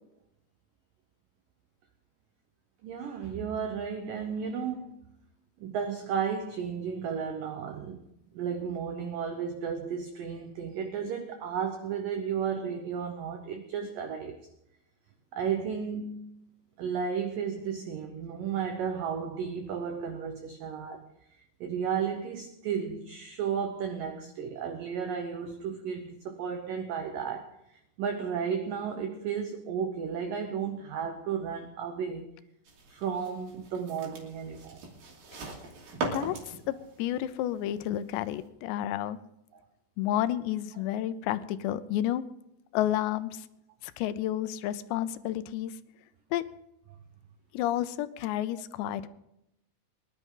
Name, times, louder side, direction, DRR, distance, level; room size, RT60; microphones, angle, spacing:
voice 1, 2.8-5.0 5.6-14.4 15.3-16.2 16.8-21.1 21.6-32.3 32.9-34.8 39.5-39.6, right 7 dB, 80° right, 1.9 m, -33 dB
sound 1, 32.7-38.5, right 3 dB, 55° right, 4.2 m, -41 dB
voice 2, 36.1-39.2 40.0-42.2 42.7-43.5 43.8-45.8 46.3-46.4 47.5-49.1, left 12 dB, 80° left, 2.7 m, -31 dB
23.0 x 11.0 x 3.8 m
omnidirectional pair, 5.2 m